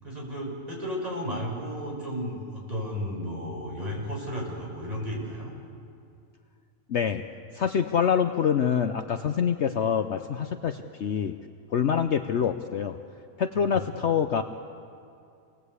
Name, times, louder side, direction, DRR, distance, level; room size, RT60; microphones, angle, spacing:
voice 1, 0.0-5.5 11.9-12.1, equal, 25° right, -3 dB, 6.7 m, -33 dB
voice 2, 6.9-7.2 7.5-11.4 11.7-13.0 13.4-14.4, left 7 dB, 55° left, 7 dB, 1.0 m, -25 dB
28.5 x 19.5 x 8.2 m, 2.4 s
omnidirectional pair, 1.5 m